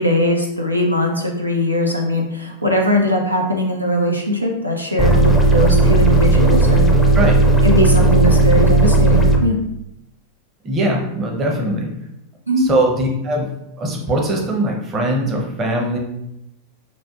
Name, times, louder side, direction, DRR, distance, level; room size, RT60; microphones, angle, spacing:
voice 1, 0.0-6.9 7.6-9.6 12.5-12.7, equal, 90° right, 0 dB, 0.5 m, -20 dB
sound 1, 5.0-9.4, right 2 dB, 10° left, 0.5 m, -14 dB
voice 2, 10.6-11.9 12.7-13.5 13.8-16.0, right 1 dB, 25° right, 0 dB, 0.7 m, -20 dB
5.0 x 2.4 x 2.4 m, 0.84 s
figure-of-eight pair, 90°, 0 cm